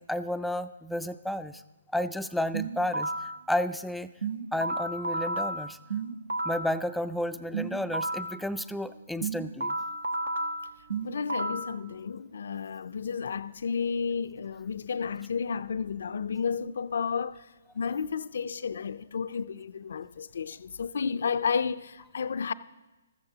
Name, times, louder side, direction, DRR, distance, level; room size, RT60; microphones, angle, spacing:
voice 1, 0.0-1.6 1.9-4.1 4.5-5.8 6.4-9.8, left 1 dB, ahead, 0.3 m, -32 dB
sound 1, 2.5-3.4 4.2-6.7 7.5-8.4 9.2-11.7, right 2 dB, 75° right, 1.1 m, -32 dB
voice 2, 11.0-17.4 17.8-22.5, left 6 dB, 65° left, 0.4 m, -32 dB
14.0 x 13.5 x 2.8 m
hypercardioid pair, 145°, 0 cm